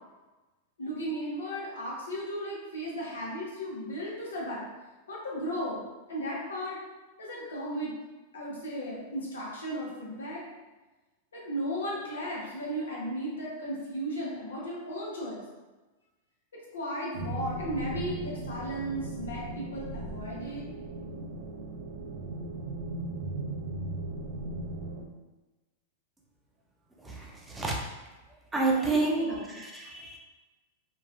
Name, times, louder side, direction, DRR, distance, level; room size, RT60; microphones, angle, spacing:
voice 1, 0.8-4.6 5.1-6.8 7.2-7.9 8.3-10.4 11.3-15.4 16.7-20.6 28.7-29.6, equal, 90° left, -5 dB, 0.9 m, -35 dB
sound 1, 17.1-25.0, right 2 dB, 65° right, 0.4 m, -37 dB
voice 2, 28.5-29.3 29.7-30.2, right 3 dB, 10° right, -2 dB, 0.6 m, -27 dB
3.0 x 2.3 x 2.3 m, 1.2 s
hypercardioid pair, 110°, 0 cm